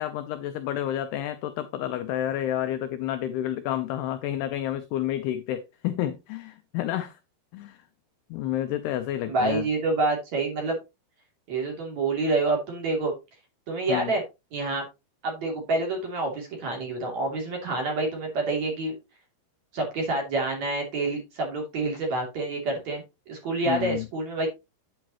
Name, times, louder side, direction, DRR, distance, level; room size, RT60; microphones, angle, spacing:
voice 1, 0.0-7.2 7.5-7.8 8.3-9.7 13.9-14.1 23.7-24.1, left 12 dB, 85° left, 2.3 m, -30 dB
voice 2, 9.3-10.8 11.5-13.1 13.7-14.2 14.5-14.9 15.2-18.9 19.7-24.5, right 2 dB, 40° right, 3.5 m, -27 dB
9.2 x 8.7 x 3.0 m
omnidirectional pair, 5.4 m